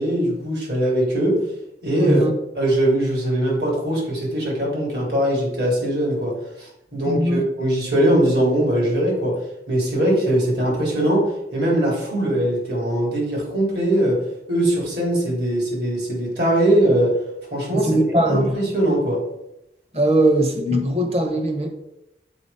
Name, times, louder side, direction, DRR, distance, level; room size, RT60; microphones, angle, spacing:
voice 1, 0.0-1.4 1.8-2.2 2.5-9.4 9.7-14.2 14.5-17.1 17.5-19.2, right 1 dB, 65° right, -3 dB, 3.3 m, -21 dB
voice 2, 2.0-2.3 7.0-7.4 17.7-18.5 19.9-21.7, right 1 dB, 35° right, 4 dB, 1.1 m, -20 dB
7.1 x 4.5 x 5.7 m, 0.85 s
head